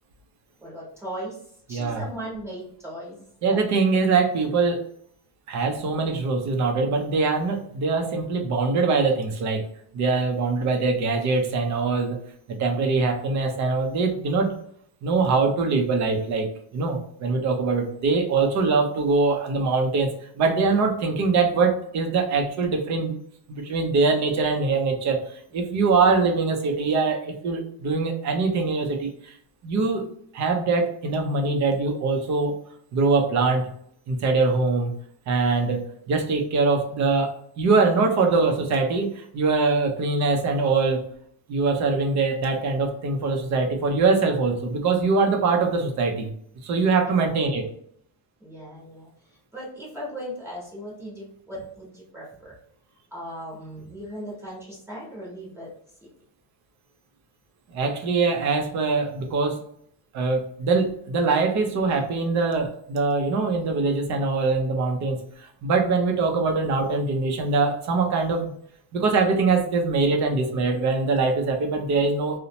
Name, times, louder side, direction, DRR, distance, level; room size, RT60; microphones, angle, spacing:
voice 1, 0.6-1.4 1.7-3.7 47.2-47.3 48.4-49.1 49.5-52.5 53.1-55.7, equal, 5° right, -6 dB, 0.9 m, -37 dB
voice 2, 1.7-2.0 3.4-4.8 5.5-9.6 9.9-12.2 12.5-14.5 15.0-16.5 16.7-23.2 23.5-29.4 29.6-30.1 30.3-32.5 32.9-33.7 34.1-34.9 35.3-41.0 41.5-46.3 46.6-47.7 57.7-59.6 60.1-68.5 68.9-72.4, right 4 dB, 40° right, 3 dB, 0.5 m, -23 dB
2.6 x 2.1 x 2.7 m, 0.65 s
cardioid pair, 165°, 49 cm